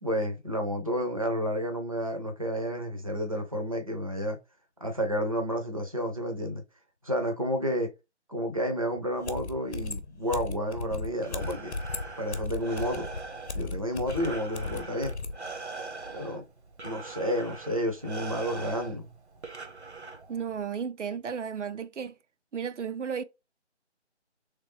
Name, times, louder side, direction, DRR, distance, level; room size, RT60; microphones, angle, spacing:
voice 1, 0.0-4.4 4.8-6.6 7.0-7.9 8.3-11.7 12.2-13.1 13.5-15.1 16.1-16.4 16.8-19.1, equal, 30° right, 0.6 m, -30 dB
sound 1, 9.0-9.1 9.2-15.4, left 3 dB, 65° left, 0.8 m, -36 dB
Breathing, 11.0-20.6, right 3 dB, 70° right, 1.0 m, -42 dB
voice 2, 20.3-22.1 22.5-23.2, right 7 dB, 85° right, 0.6 m, -33 dB
3.3 x 3.2 x 3.1 m
figure-of-eight pair, 175°, 35 cm